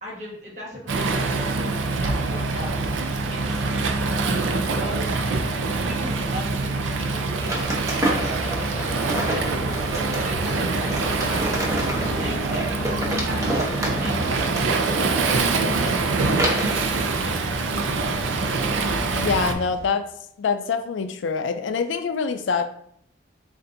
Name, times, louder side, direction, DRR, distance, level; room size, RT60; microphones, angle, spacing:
voice 1, 0.0-2.9 3.3-4.0 4.5-9.5 10.1-11.8 12.0-13.0 13.2-16.0 16.4-17.4, equal, 40° right, -4 dB, 1.3 m, -39 dB
Waves surf, 0.9-19.5, right 3 dB, 90° right, 0.5 m, -25 dB
sound 1, 5.6-19.9, left 1 dB, 65° right, 1.4 m, -36 dB
sound 2, 7.5-16.9, right 1 dB, 15° right, 0.7 m, -29 dB
voice 2, 19.1-20.1 20.4-22.7, left 5 dB, 80° left, 9 dB, 0.4 m, -25 dB
6.7 x 2.5 x 2.6 m, 0.68 s
head